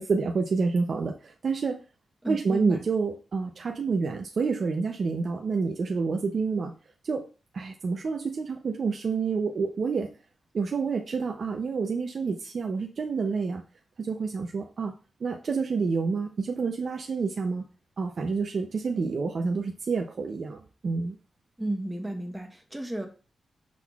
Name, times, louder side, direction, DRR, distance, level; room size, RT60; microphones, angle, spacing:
voice 1, 0.0-1.8 2.3-6.7 7.0-7.2 7.5-10.1 10.5-13.6 14.0-14.9 15.2-17.6 18.0-21.2, right 4 dB, 55° right, 3 dB, 0.5 m, -28 dB
voice 2, 2.2-2.8 21.6-23.1, right 1 dB, 10° right, 4 dB, 0.9 m, -33 dB
6.1 x 3.7 x 2.3 m, 0.35 s
wide cardioid pair, 105°, 0 cm